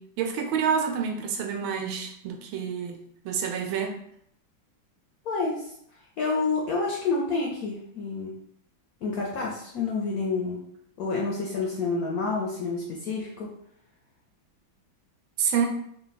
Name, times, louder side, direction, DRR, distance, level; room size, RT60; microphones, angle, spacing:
voice 1, 0.0-4.0 15.4-15.7, right 7 dB, 85° right, 3 dB, 1.4 m, -28 dB
voice 2, 5.3-5.7 6.2-8.3 9.0-10.6 11.0-13.5, left 4 dB, 70° left, -2 dB, 0.8 m, -28 dB
3.7 x 2.3 x 4.0 m, 0.69 s
omnidirectional pair, 2.2 m